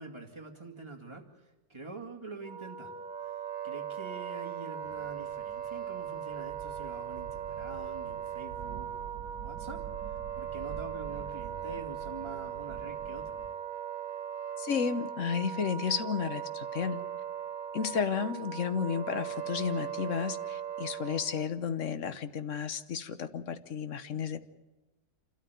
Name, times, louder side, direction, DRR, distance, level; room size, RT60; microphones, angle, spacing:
voice 1, 0.0-2.9 3.2-13.4, right 3 dB, 15° right, 0 dB, 2.3 m, -46 dB
Wind instrument woodwind instrument, 2.4-21.5, right 9 dB, 35° right, 1.3 m, -39 dB
sound 1, 4.8-13.5, right 8 dB, 75° right, 1.4 m, -47 dB
voice 2, 14.6-17.0 17.7-24.4, left 7 dB, 55° left, 11 dB, 1.3 m, -32 dB
27.5 x 13.0 x 9.3 m, 1.1 s
omnidirectional pair, 1.6 m